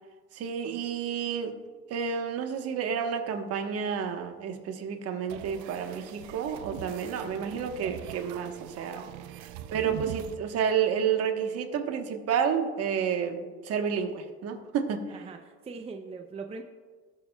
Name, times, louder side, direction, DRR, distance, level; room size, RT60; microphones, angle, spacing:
voice 1, 0.3-1.5 1.9-9.1 9.4-15.1, right 7 dB, 55° right, 5 dB, 1.2 m, -30 dB
sound 1, 5.3-10.3, right 10 dB, 70° right, 0.7 m, -42 dB
voice 2, 15.1-16.6, right 4 dB, 20° right, 5 dB, 0.6 m, -41 dB
19.0 x 7.0 x 2.3 m, 1.4 s
supercardioid pair, 110°, 30 cm